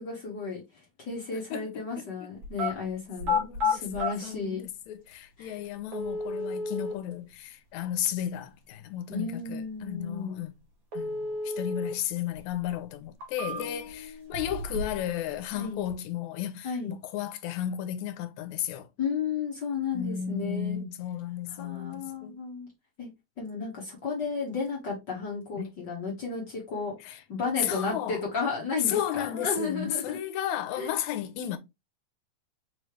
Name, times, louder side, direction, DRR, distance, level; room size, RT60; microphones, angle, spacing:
voice 1, 0.0-4.6 5.4-5.6 9.1-10.4 13.5-14.3 15.5-15.8 16.6-16.9 19.0-20.8 21.5-22.7 23.0-23.1 23.4-30.2 30.8-30.9, left 4 dB, 55° left, 1.3 m, -33 dB
voice 2, 1.3-1.8 3.3-3.8 4.2-10.5 10.9-18.9 19.9-22.4 25.6-25.7 27.1-27.2 27.6-28.2 28.9-31.6, left 10 dB, 80° left, 1.9 m, -34 dB
sound 1, 2.4-2.7 3.2-4.1 5.1-5.2 5.9-6.9 10.9-11.9 12.3-12.4 13.0-13.9 14.3-15.1 15.3-15.9, left 3 dB, 50° right, 1.7 m, -31 dB
4.5 x 3.1 x 3.2 m
omnidirectional pair, 3.4 m